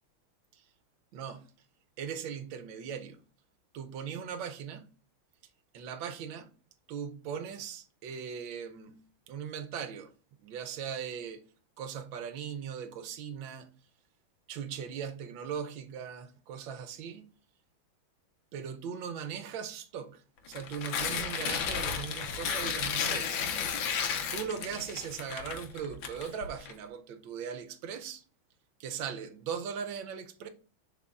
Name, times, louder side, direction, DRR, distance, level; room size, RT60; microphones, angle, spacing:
voice 1, 1.1-1.5 2.0-3.2 3.7-4.9 5.7-6.5 6.9-9.0 9.3-10.1 10.4-11.4 11.8-13.7 14.5-17.3 18.5-23.3 24.3-28.2 28.8-30.5, right 7 dB, 75° right, 1.4 m, -39 dB
Tearing, 20.5-26.7, left 7 dB, 75° left, 1.6 m, -33 dB
10.5 x 4.0 x 2.4 m
omnidirectional pair, 2.2 m